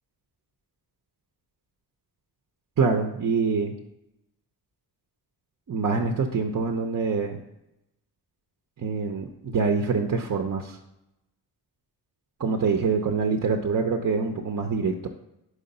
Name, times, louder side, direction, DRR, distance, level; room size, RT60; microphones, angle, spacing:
voice 1, 2.8-3.7 5.7-7.4 8.8-10.8 12.4-15.1, right 4 dB, 45° right, 3 dB, 0.6 m, -25 dB
4.9 x 3.9 x 5.4 m, 0.88 s
cardioid pair, 70°, 41 cm